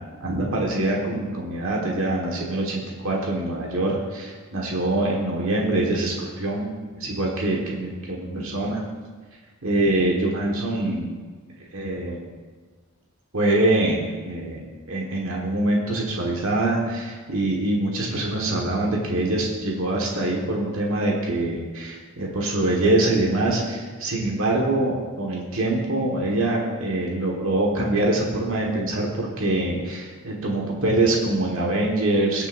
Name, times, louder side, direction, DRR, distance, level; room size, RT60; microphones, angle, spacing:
voice 1, 0.2-8.8 9.6-11.1 11.7-12.2 13.3-14.6 14.9-32.5, right 2 dB, 70° right, -2 dB, 1.6 m, -24 dB
20.5 x 7.0 x 2.6 m, 1.4 s
head